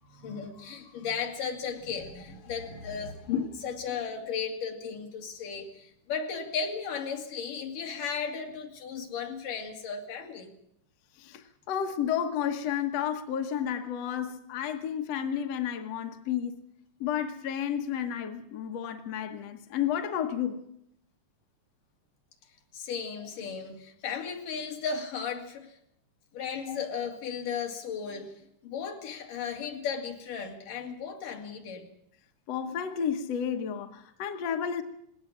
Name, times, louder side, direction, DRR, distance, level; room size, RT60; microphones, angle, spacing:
voice 1, 0.1-10.5 22.7-25.7 26.3-28.3 28.6-31.9, left 6 dB, 75° left, 4.0 m, -35 dB
voice 2, 11.2-16.6 17.0-20.6 26.7-26.8 32.5-34.8, left 9 dB, 60° left, 2.0 m, -31 dB
20.0 x 18.0 x 7.3 m
omnidirectional pair, 3.7 m